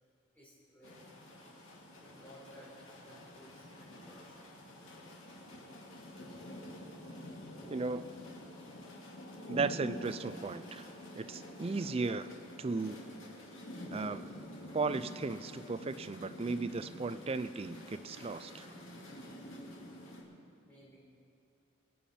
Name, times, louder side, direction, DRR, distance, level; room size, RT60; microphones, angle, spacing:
voice 1, 0.3-1.2 2.0-4.4 20.6-21.1, left 1 dB, 5° left, -7 dB, 3.9 m, -58 dB
sound 1, 0.8-20.2, left 1 dB, 60° left, 2.3 m, -48 dB
voice 2, 7.7-8.1 9.5-10.9 11.2-12.3 12.6-13.0 13.9-14.3 14.7-18.7, right 4 dB, 25° right, 12 dB, 0.3 m, -36 dB
23.0 x 9.1 x 4.3 m, 2.4 s
head